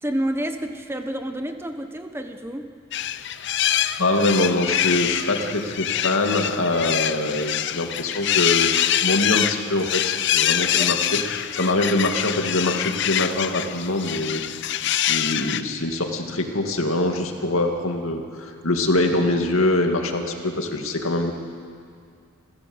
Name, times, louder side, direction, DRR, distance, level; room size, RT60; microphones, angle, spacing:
voice 1, 0.0-2.7 10.6-10.9, right 1 dB, 10° right, 6 dB, 1.1 m, -29 dB
sound 1, 2.9-15.6, left 11 dB, 55° left, 0.6 m, -25 dB
voice 2, 4.0-14.4 15.0-21.3, left 2 dB, 75° left, 3 dB, 2.3 m, -24 dB
29.5 x 15.0 x 8.0 m, 2.2 s
head